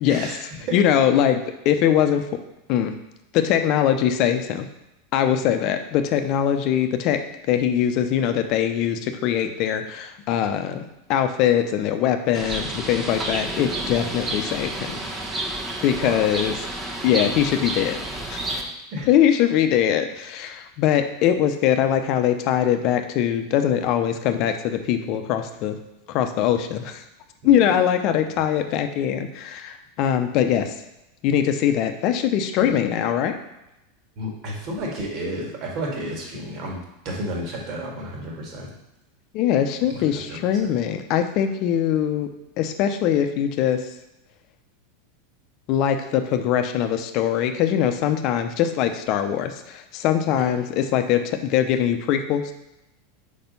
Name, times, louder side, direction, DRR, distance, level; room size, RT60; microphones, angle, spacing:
voice 1, 0.1-0.8 16.0-16.3 18.9-19.1 27.4-27.7 32.6-32.7 34.2-38.7 39.9-40.8 50.3-50.5, right 1 dB, 50° right, -1 dB, 2.0 m, -32 dB
voice 2, 0.7-2.2 2.7-2.9 3.3-4.7 5.1-7.2 7.5-15.0 15.8-16.5 17.0-18.0 18.3-18.4 19.1-25.7 26.1-27.0 27.4-30.7 31.2-33.4 39.3-42.3 42.6-43.8 45.7-52.5, left 9 dB, 50° left, 7 dB, 0.7 m, -22 dB
Bird, 12.3-18.6, right 2 dB, 20° right, 1.2 m, -30 dB
5.0 x 4.3 x 5.4 m, 0.92 s
hypercardioid pair, 105°, 0 cm